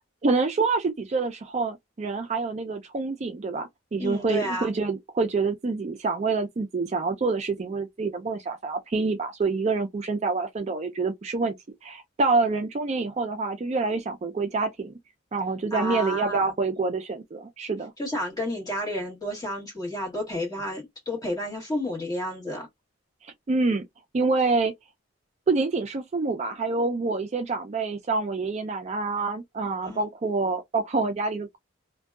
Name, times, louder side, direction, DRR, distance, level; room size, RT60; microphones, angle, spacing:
voice 1, 0.2-11.6 11.8-14.9 15.3-17.9 23.2-23.8 24.1-24.7 25.5-31.6, right 3 dB, 35° right, 0.4 m, -27 dB
voice 2, 4.0-4.7 15.7-16.5 18.0-22.7 29.8-30.0, left 1 dB, 20° left, 1.3 m, -31 dB
2.6 x 2.2 x 2.2 m
head